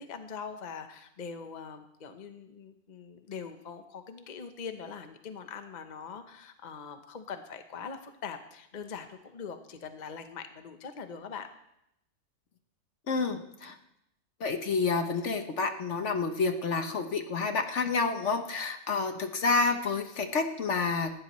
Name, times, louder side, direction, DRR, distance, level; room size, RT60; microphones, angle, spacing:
voice 1, 0.0-11.5, left 6 dB, 35° left, 7 dB, 0.9 m, -42 dB
voice 2, 13.1-13.7 14.4-21.1, left 4 dB, 55° left, 6 dB, 1.2 m, -29 dB
19.0 x 15.0 x 3.1 m, 0.81 s
omnidirectional pair, 1.6 m